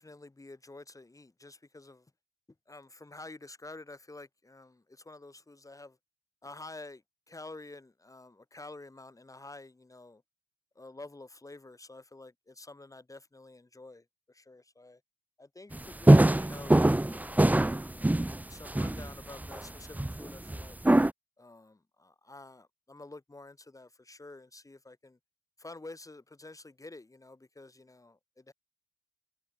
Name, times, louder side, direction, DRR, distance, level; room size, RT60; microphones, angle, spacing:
voice 1, 0.0-2.1 2.7-6.0 6.4-7.0 7.3-10.2 10.8-15.0 15.4-16.8 17.1-17.5 17.8-20.8 21.4-25.2 25.6-28.5, left 2 dB, 15° left, 4.0 m, -49 dB
sound 1, 15.7-15.8 16.1-19.1 19.4-19.6 19.9-21.1, right 1 dB, 10° right, 1.0 m, -23 dB
cardioid pair, 90°, 20 cm